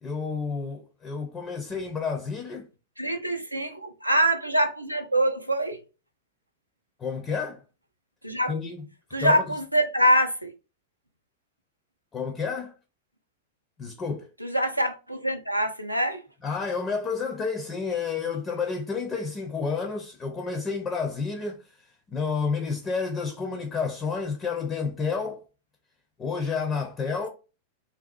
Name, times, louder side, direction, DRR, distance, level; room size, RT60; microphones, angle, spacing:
voice 1, 0.0-2.7 7.0-7.6 8.5-8.9 9.1-9.4 12.1-12.7 13.8-14.3 16.4-25.4 26.2-27.3, left 5 dB, 20° left, 0.4 m, -30 dB
voice 2, 3.0-5.8 8.2-8.5 9.1-10.5 14.4-16.2, right 1 dB, 90° right, 0.4 m, -24 dB
2.6 x 2.2 x 2.4 m
figure-of-eight pair, 90°, 0 cm